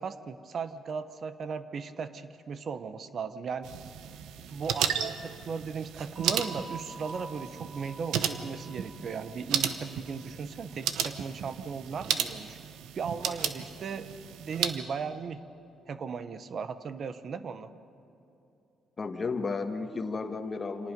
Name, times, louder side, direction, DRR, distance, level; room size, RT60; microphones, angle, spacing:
voice 1, 0.0-3.7 4.5-12.6 12.9-14.1 14.4-15.4 15.9-17.7, right 5 dB, 55° right, 11 dB, 0.9 m, -37 dB
sound 1, 3.6-14.8, right 9 dB, 90° right, 0.9 m, -34 dB
sound 2, 6.2-10.8, right 4 dB, 30° right, 3.3 m, -47 dB
voice 2, 19.0-20.9, left 4 dB, 35° left, 7 dB, 1.4 m, -33 dB
26.5 x 18.5 x 5.3 m, 2.9 s
cardioid pair, 90°, 0 cm